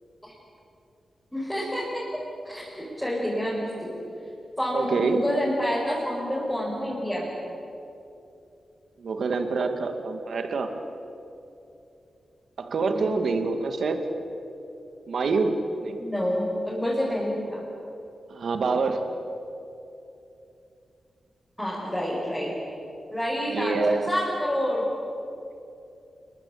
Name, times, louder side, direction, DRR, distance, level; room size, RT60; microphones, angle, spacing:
voice 1, 1.3-2.0 2.4-4.0 4.6-7.3 12.9-13.1 16.0-17.6 21.6-22.5 23.1-24.9, equal, 5° left, -7 dB, 5.8 m, -28 dB
voice 2, 4.7-5.2 9.0-10.7 12.6-14.0 15.1-16.0 18.3-19.0 23.5-24.1, right 4 dB, 65° right, 6 dB, 2.1 m, -26 dB
29.0 x 22.5 x 8.8 m, 2.8 s
wide cardioid pair, 150°, 0 cm